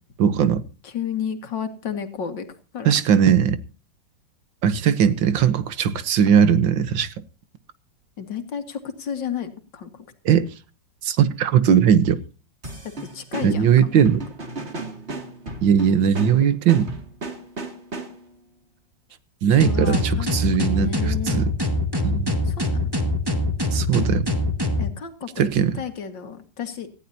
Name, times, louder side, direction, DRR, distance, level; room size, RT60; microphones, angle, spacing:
voice 1, 0.2-0.6 2.9-3.6 4.6-7.1 10.3-10.5 11.0-12.2 13.4-14.2 15.6-16.9 19.4-21.5 22.0-22.3 23.7-24.3 25.4-25.8, right 8 dB, 85° right, 1.9 m, -19 dB
voice 2, 0.8-2.5 2.7-2.9 8.2-10.3 13.1-14.0 19.7-21.5 22.4-22.9 24.8-25.5 25.8-26.9, left 7 dB, 75° left, 2.6 m, -32 dB
sound 1, 12.6-18.4, right 2 dB, 35° right, 2.6 m, -35 dB
sound 2, 19.6-24.9, left 1 dB, 15° right, 1.8 m, -23 dB
18.5 x 15.0 x 2.8 m
omnidirectional pair, 2.0 m